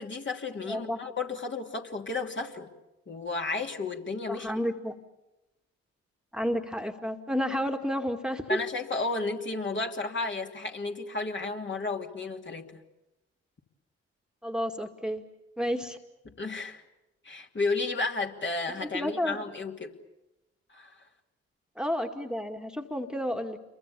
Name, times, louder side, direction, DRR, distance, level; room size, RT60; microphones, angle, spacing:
voice 1, 0.0-2.7 3.1-4.5 8.5-12.7 16.3-16.8 17.2-19.9 20.7-20.9, left 3 dB, 35° left, 2 dB, 3.0 m, -33 dB
voice 2, 0.7-1.0 4.3-5.0 6.3-8.6 14.4-15.2 15.6-16.0 18.8-19.4 21.8-23.6, equal, ahead, 4 dB, 2.2 m, -31 dB
29.5 x 23.5 x 7.1 m, 0.97 s
hypercardioid pair, 45°, 32 cm